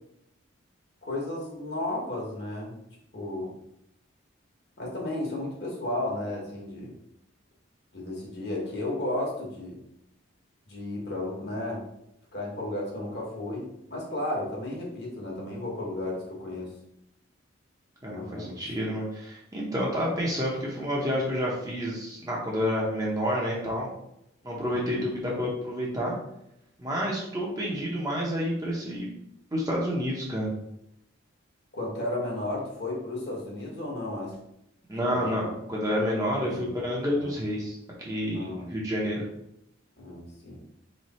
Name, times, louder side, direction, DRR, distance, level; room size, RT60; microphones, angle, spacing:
voice 1, 1.0-2.8 3.1-3.5 4.8-6.9 7.9-9.8 10.7-11.8 12.3-16.7 18.1-18.6 24.7-25.1 31.7-34.3 35.0-35.5 36.4-36.7 37.2-37.3 38.3-38.7 40.0-40.6, left 1 dB, 55° left, -3 dB, 1.3 m, -33 dB
voice 2, 18.0-23.9 24.4-26.1 26.8-29.1 29.5-30.5 34.9-39.3, equal, 20° right, -4 dB, 0.8 m, -29 dB
3.2 x 3.2 x 4.2 m, 0.80 s
head